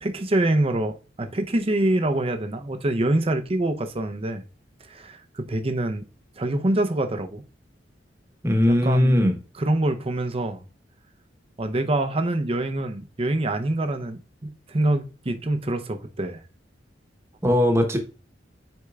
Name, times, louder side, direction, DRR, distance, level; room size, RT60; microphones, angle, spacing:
voice 1, 0.0-4.4 4.8-6.0 6.4-7.4 8.7-9.2 9.5-10.6 11.6-16.4, right 1 dB, 35° right, 0.6 m, -25 dB
voice 2, 8.4-9.3 17.4-18.0, left 1 dB, 15° right, 1.1 m, -19 dB
9.6 x 4.4 x 2.3 m
head